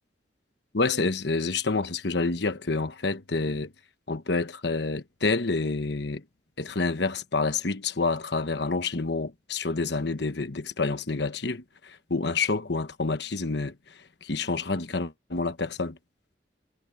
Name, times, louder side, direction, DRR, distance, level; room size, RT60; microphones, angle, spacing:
voice 1, 0.7-3.7 4.1-6.2 6.6-13.7 14.2-16.0, left 3 dB, 70° left, 1.2 m, -28 dB
head